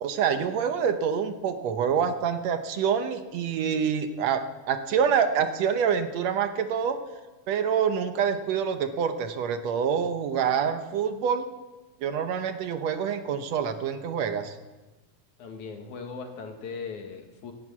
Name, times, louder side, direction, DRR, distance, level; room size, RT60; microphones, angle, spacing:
voice 1, 0.0-7.0 7.5-11.5 12.0-14.6, right 7 dB, 70° right, 8 dB, 1.9 m, -26 dB
voice 2, 15.4-17.5, left 5 dB, 80° left, 4 dB, 3.2 m, -38 dB
18.0 x 11.0 x 7.3 m, 1.2 s
omnidirectional pair, 3.4 m